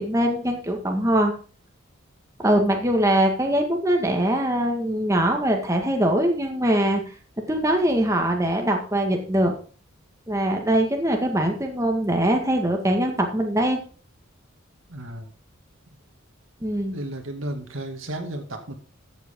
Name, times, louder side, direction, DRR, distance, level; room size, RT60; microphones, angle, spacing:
voice 1, 0.0-1.3 2.4-7.0 7.5-9.5 10.3-13.8 16.6-16.9, right 1 dB, 15° right, 2 dB, 1.7 m, -22 dB
voice 2, 14.9-15.3 16.9-18.8, right 1 dB, 75° right, 4 dB, 2.3 m, -33 dB
13.5 x 8.1 x 3.7 m, 0.39 s
head